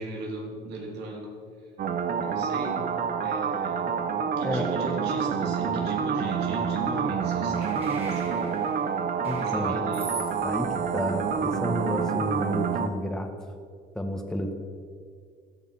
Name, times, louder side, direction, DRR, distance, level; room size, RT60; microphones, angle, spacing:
voice 1, 0.0-1.3 2.2-2.9 3.2-8.5 9.4-10.1, right 2 dB, 85° right, 0 dB, 3.6 m, -38 dB
sound 1, 1.8-12.9, right 6 dB, 55° right, 1.2 m, -28 dB
sound 2, 7.5-12.8, right 3 dB, 35° right, 4.4 m, -44 dB
voice 2, 9.2-9.8 10.4-13.3 13.9-14.5, equal, 5° left, 2 dB, 1.6 m, -31 dB
17.0 x 11.5 x 6.1 m, 2.1 s
cardioid pair, 110°, 17 cm